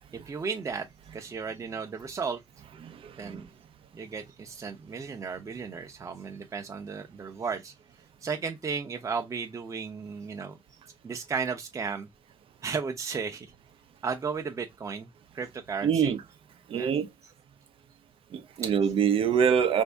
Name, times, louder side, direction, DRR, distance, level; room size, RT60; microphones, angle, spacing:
voice 1, 0.3-0.9 1.1-2.4 3.2-3.5 3.9-7.7 8.2-10.6 11.0-12.1 12.6-13.5 14.0-15.1 15.3-16.2 16.7-16.9 18.6-18.7, right 5 dB, 35° right, 0.6 m, -34 dB
voice 2, 2.8-3.4 15.8-16.2 16.7-17.1 18.3-19.8, right 7 dB, 85° right, 0.6 m, -25 dB
5.1 x 2.7 x 3.4 m
wide cardioid pair, 145°, 9 cm